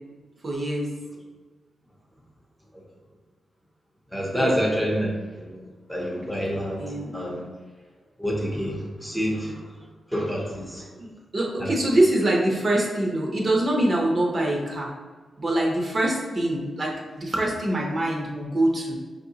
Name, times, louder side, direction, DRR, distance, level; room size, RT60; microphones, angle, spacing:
voice 1, 0.4-0.9 4.3-4.6 6.8-7.2 11.0-11.1 11.3-14.9 15.4-18.9, right 1 dB, 35° right, -1 dB, 0.6 m, -24 dB
voice 2, 4.1-5.1 5.4-5.6 5.9-7.4 8.2-9.6 10.1-10.8 11.6-11.7, equal, 5° left, -2 dB, 0.7 m, -27 dB
5.2 x 2.7 x 2.7 m, 1.4 s
wide cardioid pair, 135°, 0 cm